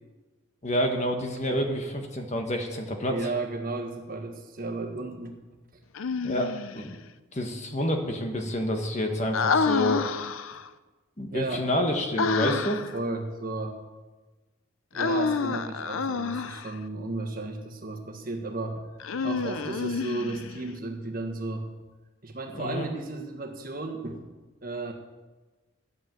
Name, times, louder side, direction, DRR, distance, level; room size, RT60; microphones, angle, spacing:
voice 1, 0.6-3.2 6.2-7.0 7.3-10.0 11.2-12.8 22.5-22.9, equal, 30° left, 4 dB, 1.3 m, -28 dB
voice 2, 3.1-5.3 11.3-11.7 12.9-13.8 14.9-18.8 19.2-21.7 22.2-24.2 24.6-24.9, right 2 dB, 40° right, 3 dB, 1.5 m, -34 dB
Human voice, 5.9-6.8 9.3-10.7 12.2-13.0 14.9-16.7 19.0-20.6, left 5 dB, 75° left, 0.5 m, -28 dB
11.0 x 8.4 x 7.7 m, 1.2 s
head